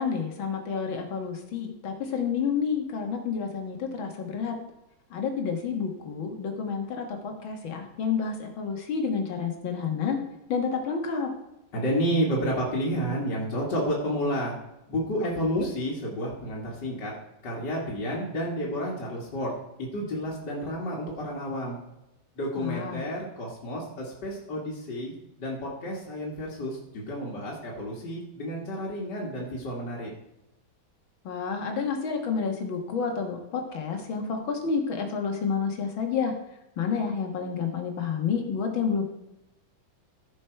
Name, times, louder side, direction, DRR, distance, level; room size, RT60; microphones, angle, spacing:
voice 1, 0.0-4.6 5.1-10.2 10.5-11.3 15.4-15.7 22.6-23.0 31.2-36.3 36.8-39.0, left 6 dB, 85° left, 4 dB, 2.4 m, -29 dB
voice 2, 11.7-14.6 14.9-17.1 17.4-19.5 19.9-21.8 22.3-25.1 25.4-30.1, equal, 60° left, -5 dB, 2.5 m, -30 dB
14.5 x 6.4 x 4.6 m, 0.92 s
omnidirectional pair, 2.1 m